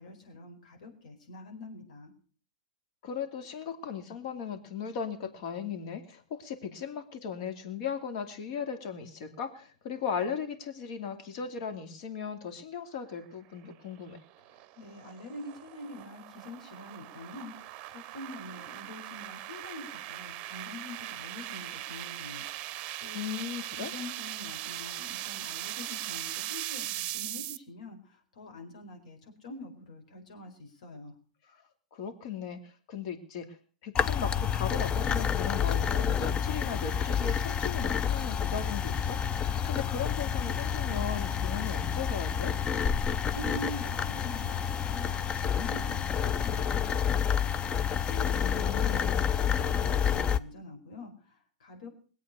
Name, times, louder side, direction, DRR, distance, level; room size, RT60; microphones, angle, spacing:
voice 1, 0.0-2.1 14.5-23.3 23.8-31.1 43.0-47.5 48.0-51.9, left 2 dB, 75° left, 3 dB, 4.7 m, -45 dB
voice 2, 3.0-14.2 23.1-23.9 31.5-31.6 31.9-33.5 33.8-39.2 39.7-42.5 48.3-49.2, left 7 dB, 55° left, 7 dB, 2.5 m, -37 dB
sound 1, 13.6-27.6, right 15 dB, 40° right, 0.7 m, -40 dB
sound 2, 34.0-50.4, left 8 dB, 25° left, 0.6 m, -29 dB
21.0 x 8.3 x 6.7 m, 0.42 s
hypercardioid pair, 115°, 4 cm